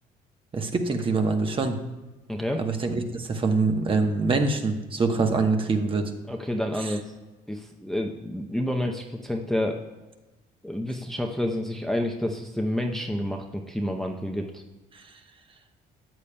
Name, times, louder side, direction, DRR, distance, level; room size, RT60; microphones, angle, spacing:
voice 1, 0.5-1.8 2.6-6.1 6.8-6.9 14.9-15.0, right 3 dB, 30° right, 5 dB, 1.1 m, -25 dB
voice 2, 2.3-2.6 6.3-7.0 7.5-9.8 10.6-14.6, left 1 dB, ahead, 2 dB, 0.7 m, -29 dB
13.5 x 8.3 x 2.2 m, 1.1 s
cardioid pair, 110°, 17 cm